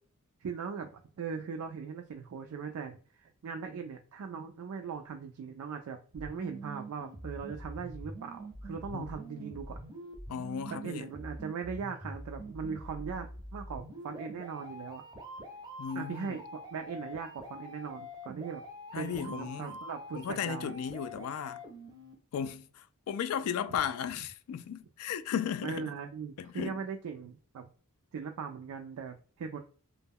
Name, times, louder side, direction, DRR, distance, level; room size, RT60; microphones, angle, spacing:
voice 1, 0.4-9.8 10.7-13.3 13.5-15.0 15.9-18.6 18.9-20.7 25.6-27.7 28.1-29.6, right 6 dB, 75° right, 0.3 m, -39 dB
sound 1, 6.1-22.1, right 1 dB, 20° right, 0.5 m, -45 dB
voice 2, 10.3-11.1 15.8-16.4 18.9-19.7 20.1-21.6 22.3-25.9 26.4-26.8, left 8 dB, 70° left, 0.3 m, -35 dB
2.1 x 2.1 x 3.4 m
head